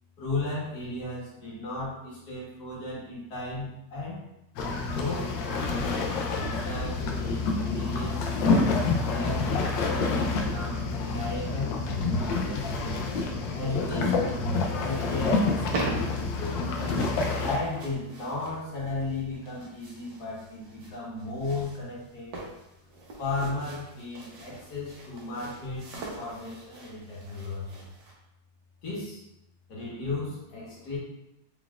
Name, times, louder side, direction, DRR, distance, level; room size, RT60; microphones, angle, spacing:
voice 1, 0.2-4.2 4.9-6.0 6.3-8.4 9.1-13.0 13.6-16.6 17.4-22.4 22.8-22.9 23.2-27.8 28.8-29.2 29.7-31.0, left 2 dB, 65° left, -6 dB, 2.0 m, -35 dB
sound 1, 4.6-17.6, left 3 dB, 90° left, 1.3 m, -28 dB
sound 2, 15.4-28.1, right 2 dB, 75° right, 1.5 m, -41 dB
4.4 x 4.0 x 2.4 m, 0.86 s
omnidirectional pair, 1.9 m